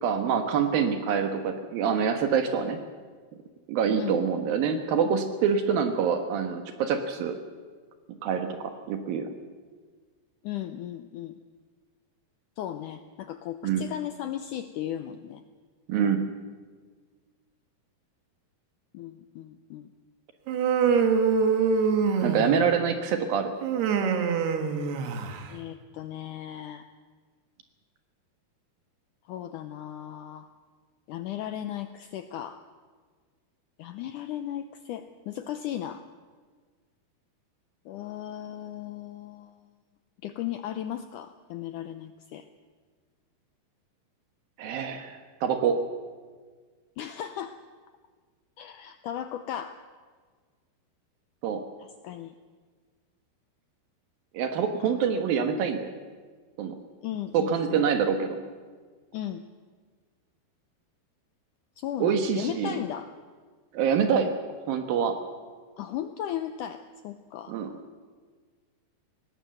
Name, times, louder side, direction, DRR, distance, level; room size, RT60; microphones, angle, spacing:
voice 1, 0.0-2.8 3.7-7.4 8.2-9.3 13.6-13.9 15.9-16.3 22.2-23.5 44.6-45.8 51.4-51.6 54.3-55.9 56.6-56.7 57.3-58.4 62.0-62.8 63.7-64.3 64.7-65.2 67.5-67.7, right 7 dB, 70° right, 7 dB, 2.9 m, -26 dB
voice 2, 10.4-11.4 12.6-15.4 18.9-19.9 25.5-26.9 29.3-30.5 31.1-32.6 33.8-36.0 37.9-39.6 40.2-42.4 47.0-47.6 48.6-49.8 51.8-52.3 54.8-55.0 57.0-57.9 59.1-59.4 61.8-63.1 64.1-64.3 65.8-67.5, left 11 dB, 80° left, 9 dB, 1.8 m, -36 dB
Human voice, 20.5-22.7 23.6-25.5, right 6 dB, 85° right, 3.7 m, -24 dB
19.5 x 18.0 x 7.8 m, 1.5 s
omnidirectional pair, 4.5 m